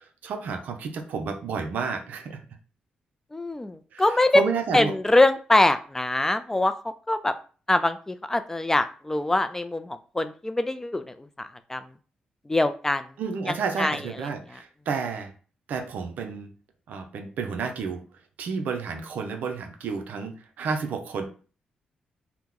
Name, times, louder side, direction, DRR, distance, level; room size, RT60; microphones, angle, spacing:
voice 1, 0.2-2.4 3.9-5.0 13.2-15.3 15.7-16.5 16.9-18.0 18.4-21.2, right 5 dB, 75° right, 6 dB, 0.5 m, -31 dB
voice 2, 3.3-4.4 4.7-6.7 7.1-7.3 7.7-11.0 11.7-11.8 12.5-13.0 13.8-14.0, left 2 dB, 15° left, 11 dB, 0.3 m, -23 dB
2.9 x 2.1 x 3.6 m, 0.38 s
cardioid pair, 70°, 3 cm